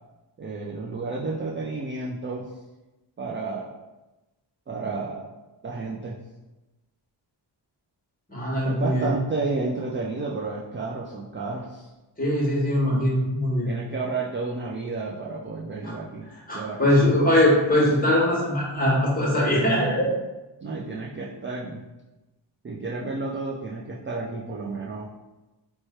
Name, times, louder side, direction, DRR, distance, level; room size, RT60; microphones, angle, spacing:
voice 1, 0.4-2.5 3.2-3.7 4.7-5.3 5.6-6.2 8.6-11.9 13.7-16.3 16.5-17.2 20.6-21.8 22.6-25.1, right 3 dB, 30° right, -3 dB, 0.3 m, -31 dB
voice 2, 8.3-9.2 12.2-13.7 15.8-15.9 16.5-20.1, left 1 dB, 20° left, -5 dB, 1.2 m, -21 dB
3.1 x 2.3 x 4.2 m, 1.1 s
wide cardioid pair, 105°, 46 cm